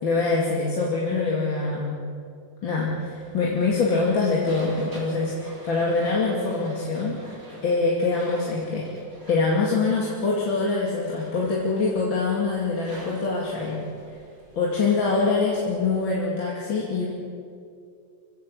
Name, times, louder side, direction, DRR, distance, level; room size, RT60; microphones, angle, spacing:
voice 1, 0.0-2.0 2.6-7.2 7.6-8.9 9.3-13.9 14.6-17.1, left 3 dB, 80° left, -4 dB, 3.3 m, -24 dB
sound 1, 3.2-16.0, right 1 dB, 45° right, 5.0 m, -46 dB
25.0 x 16.5 x 8.0 m, 2.4 s
omnidirectional pair, 2.1 m